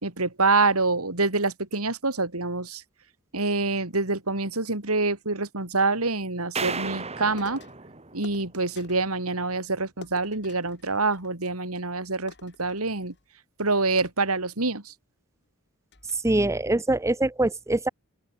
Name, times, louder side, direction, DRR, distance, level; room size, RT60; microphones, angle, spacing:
voice 1, 0.0-2.8 3.3-7.6 8.1-13.1 13.6-14.9, right 3 dB, 80° right, 3.8 m, -26 dB
sound 1, 6.5-8.9, right 4 dB, 30° right, 3.7 m, -34 dB
sound 2, 7.4-7.8 8.2-9.1 10.0-11.6 11.9-12.0 12.3-13.3 14.0-14.9 15.4-15.5 15.9-16.4, left 3 dB, 55° left, 6.0 m, -49 dB
voice 2, 16.2-17.9, right 2 dB, 15° right, 0.7 m, -23 dB
open air
head